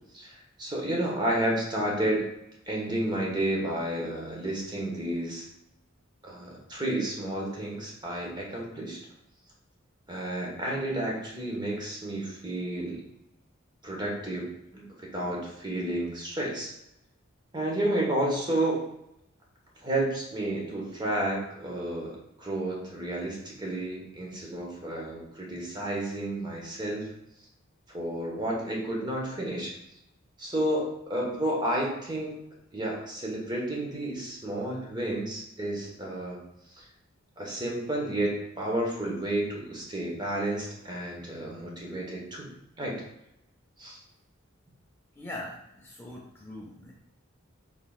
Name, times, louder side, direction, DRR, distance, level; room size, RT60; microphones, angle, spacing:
voice 1, 0.1-2.3 2.7-5.5 6.2-9.0 10.1-13.0 13.8-16.7 17.5-18.8 19.8-27.1 27.9-29.8 30.4-32.3 32.7-36.4 36.7-36.8 37.4-42.5 42.8-42.9 43.8-44.0, right 1 dB, 20° right, -2 dB, 1.0 m, -31 dB
voice 2, 45.2-46.9, left 1 dB, 10° left, -3 dB, 0.5 m, -41 dB
4.8 x 3.8 x 2.3 m, 0.83 s
head